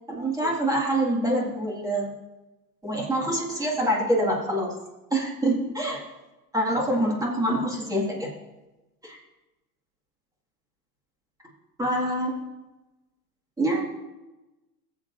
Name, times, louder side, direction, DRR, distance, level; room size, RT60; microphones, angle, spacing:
voice 1, 0.1-2.1 2.8-4.8 5.1-6.0 6.5-8.3 9.0-9.2 11.8-12.3 13.6-13.8, right 1 dB, 5° right, -2 dB, 2.0 m, -25 dB
18.5 x 7.5 x 2.6 m, 1.1 s
hypercardioid pair, 120°, 50 cm